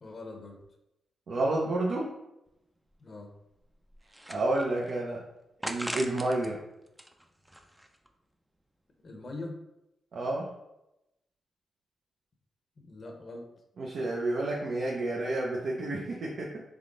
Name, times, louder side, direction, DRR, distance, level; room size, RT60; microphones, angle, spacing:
voice 1, 0.0-0.6 3.0-3.3 9.0-9.6 12.8-13.5, left 2 dB, 45° left, 3 dB, 0.7 m, -42 dB
voice 2, 1.3-2.1 4.3-5.2 5.6-6.6 10.1-10.5 13.8-16.6, right 2 dB, 65° right, -3 dB, 0.6 m, -30 dB
sound 1, 2.5-2.6 2.9-3.0 3.6-4.9 5.6-6.5 6.9-8.1, equal, 5° right, 0.4 m, -40 dB
3.6 x 3.3 x 3.7 m, 0.89 s
cardioid pair, 90°, 0 cm